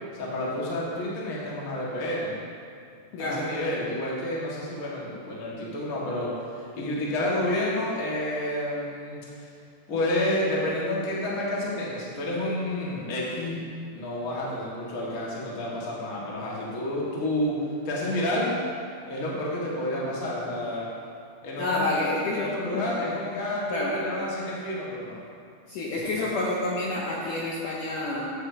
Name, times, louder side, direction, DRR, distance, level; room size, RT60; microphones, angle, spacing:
voice 1, 0.1-2.3 3.2-9.5 9.9-17.6 17.8-18.5 19.1-20.9 21.4-25.2 26.2-26.3, left 1 dB, 50° left, -6 dB, 1.0 m, -30 dB
voice 2, 21.6-22.9 23.7-24.0 25.7-28.3, left 2 dB, 70° left, -5 dB, 2.0 m, -28 dB
15.0 x 8.0 x 2.9 m, 2.3 s
omnidirectional pair, 4.8 m